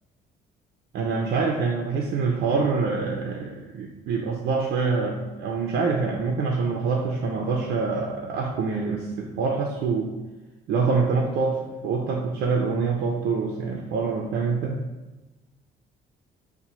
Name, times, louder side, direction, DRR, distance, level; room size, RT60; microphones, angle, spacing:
voice 1, 0.9-10.1 10.7-14.8, right 4 dB, 70° right, 1 dB, 0.5 m, -25 dB
5.4 x 2.2 x 2.9 m, 1.1 s
cardioid pair, 110°, 17 cm